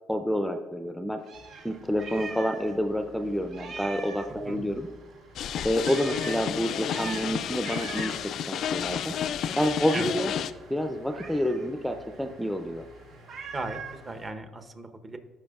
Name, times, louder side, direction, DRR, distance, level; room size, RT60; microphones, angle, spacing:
voice 1, 0.1-1.2 1.6-4.9 5.6-8.2 8.5-9.1 9.6-10.3 10.7-12.8, equal, ahead, 7 dB, 0.5 m, -28 dB
Meow, 1.2-2.8 3.0-3.1 3.5-4.4 5.8-6.4 6.9-7.3 7.6-8.3 11.1-11.7 13.3-14.0, right 4 dB, 60° right, 0.8 m, -41 dB
sound 1, 1.3-14.3, equal, 80° right, 1.4 m, -53 dB
sound 2, 5.4-10.5, left 9 dB, 65° left, 0.3 m, -31 dB
voice 2, 13.5-15.2, right 2 dB, 30° right, 6 dB, 0.8 m, -37 dB
12.0 x 5.0 x 2.4 m, 1.4 s
supercardioid pair, 70°, 0 cm